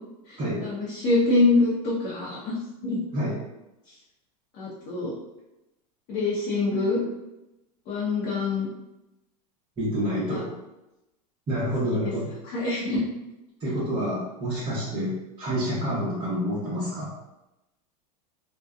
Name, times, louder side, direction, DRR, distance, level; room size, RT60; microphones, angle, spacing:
voice 1, 0.3-3.0 4.6-5.1 6.1-7.0 7.9-8.7 10.3-10.4 12.0-12.1 12.5-13.0, left 3 dB, 45° left, -7 dB, 0.8 m, -25 dB
voice 2, 9.8-10.5 11.5-12.3 13.6-17.1, equal, 25° right, -9 dB, 0.9 m, -28 dB
2.7 x 2.2 x 2.3 m, 0.95 s
supercardioid pair, 120°, 20 cm